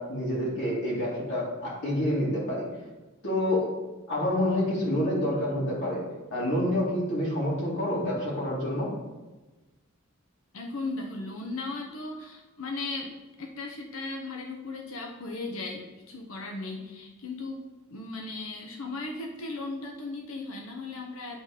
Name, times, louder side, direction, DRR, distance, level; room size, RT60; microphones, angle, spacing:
voice 1, 0.0-2.6 3.2-3.7 4.1-6.0 6.3-8.9, left 1 dB, 55° left, -6 dB, 2.5 m, -28 dB
voice 2, 10.5-13.1 13.4-17.6 17.9-21.4, left 3 dB, 70° left, 1 dB, 0.9 m, -36 dB
8.7 x 3.9 x 5.0 m, 1.1 s
head